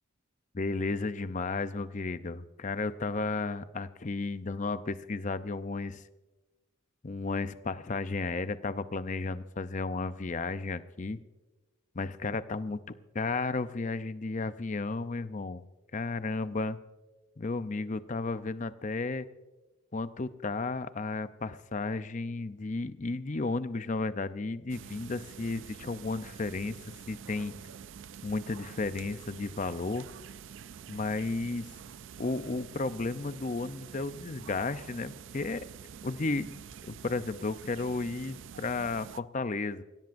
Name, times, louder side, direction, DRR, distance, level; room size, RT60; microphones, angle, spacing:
voice 1, 0.5-6.0 7.0-11.2 11.9-12.8 13.1-15.6 15.9-16.8 17.4-19.3 19.9-26.8 27.1-27.5 28.2-30.1 30.9-31.7 32.2-35.7 36.0-39.8, left 3 dB, 35° left, 12 dB, 0.6 m, -33 dB
sound 1, 24.7-39.2, right 7 dB, 60° right, 0.4 m, -47 dB
26.5 x 16.5 x 2.6 m, 1.1 s
head